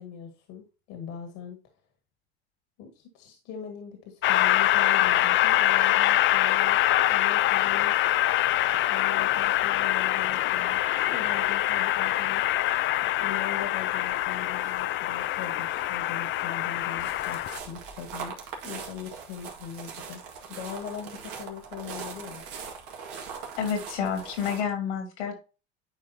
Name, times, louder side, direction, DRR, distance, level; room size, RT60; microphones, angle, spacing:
voice 1, 0.0-1.6 2.8-6.8 7.1-8.0 8.9-12.4 13.2-22.4, left 8 dB, 65° left, 5 dB, 1.8 m, -41 dB
Train, 4.2-17.6, left 14 dB, 40° left, 0.4 m, -24 dB
sound 1, 17.0-24.6, right 6 dB, 65° right, 2.0 m, -41 dB
voice 2, 23.6-25.4, left 7 dB, 90° left, 4 dB, 2.8 m, -29 dB
10.0 x 4.7 x 2.8 m, 0.32 s
hypercardioid pair, 90°, 33 cm